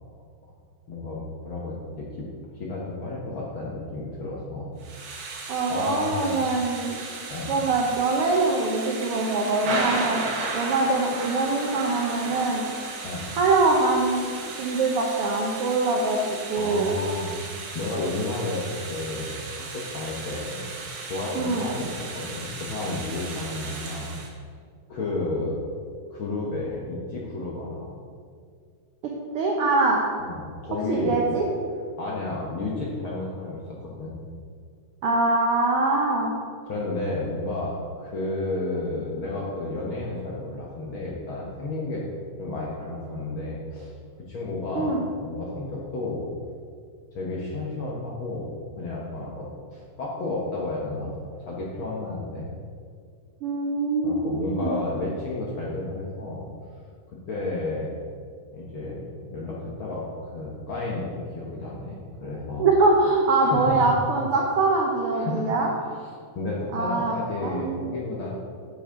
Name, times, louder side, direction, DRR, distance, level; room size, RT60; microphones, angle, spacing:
voice 1, 0.9-2.2 2.6-4.7 5.7-6.4 7.3-7.6 13.0-13.3 16.6-19.5 19.7-20.7 21.0-24.2 24.9-25.6 26.0-27.9 30.2-31.2 32.0-34.2 36.6-42.0 42.4-43.9 44.3-46.3 47.1-51.1 51.4-52.5 54.0-56.4 57.1-57.9 58.5-62.7 63.4-63.9 65.1-65.5 65.9-68.3, left 2 dB, 60° left, -4 dB, 1.4 m, -32 dB
Thunder / Rain, 4.8-24.3, right 3 dB, 60° right, 1.6 m, -35 dB
voice 2, 5.5-7.0 7.5-10.2 10.5-12.6 13.4-14.3 14.6-16.2 16.5-16.9 21.4-21.6 29.0-30.0 30.9-31.5 35.0-36.3 44.7-45.0 53.4-54.8 62.6-65.7 66.7-67.2 67.4-67.9, right 3 dB, 75° right, -1 dB, 1.3 m, -23 dB
9.6 x 8.0 x 3.8 m, 2.1 s
omnidirectional pair, 3.6 m